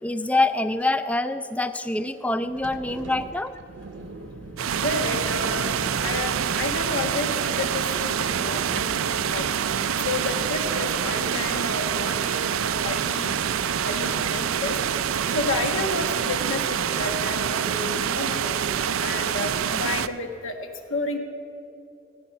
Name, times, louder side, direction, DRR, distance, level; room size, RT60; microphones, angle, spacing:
voice 1, 0.0-3.5, left 2 dB, 5° left, 11 dB, 0.4 m, -25 dB
sound 1, 2.4-10.3, right 2 dB, 65° right, 0.9 m, -40 dB
sound 2, 4.6-20.1, right 8 dB, 85° right, 0.5 m, -26 dB
voice 2, 4.8-5.7 6.0-9.5 10.0-13.4 13.8-14.8 15.3-18.6 19.0-20.6 20.9-21.2, left 3 dB, 70° left, 5 dB, 1.4 m, -31 dB
17.0 x 9.9 x 5.7 m, 3.0 s
head